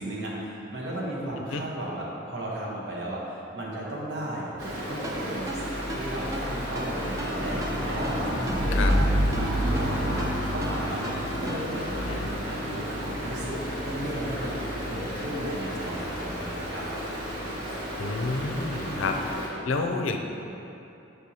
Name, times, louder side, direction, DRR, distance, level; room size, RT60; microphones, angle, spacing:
voice 1, 0.0-9.0 9.3-16.9 18.9-19.2, right 1 dB, 65° right, -5 dB, 1.1 m, -35 dB
Stream, 4.6-19.5, equal, 80° right, 1.2 m, -30 dB
Ringtone, 5.0-11.9, equal, 15° right, 0.4 m, -39 dB
voice 2, 18.0-19.2 19.7-20.2, left 3 dB, 90° left, 4 dB, 0.5 m, -29 dB
6.2 x 5.3 x 2.8 m, 2.9 s
head